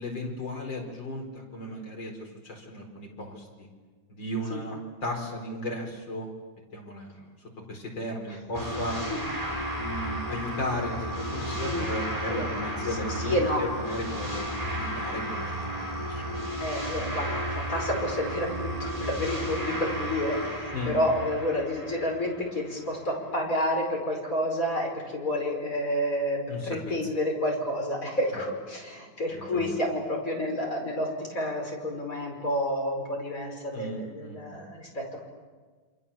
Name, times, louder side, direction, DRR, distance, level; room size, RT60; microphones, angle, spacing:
voice 1, 0.0-3.7 4.1-6.3 6.7-7.3 7.7-9.0 9.7-16.4 20.7-21.0 26.5-26.9 29.3-29.7 33.7-34.7, left 1 dB, 70° left, 1 dB, 5.5 m, -36 dB
sound 1, 8.5-22.9, equal, 20° right, 4.4 m, -33 dB
voice 2, 11.5-11.9 12.2-12.5 12.8-13.6 16.6-35.3, left 1 dB, 45° left, 0 dB, 5.6 m, -30 dB
28.0 x 27.0 x 7.2 m, 1.4 s
omnidirectional pair, 2.1 m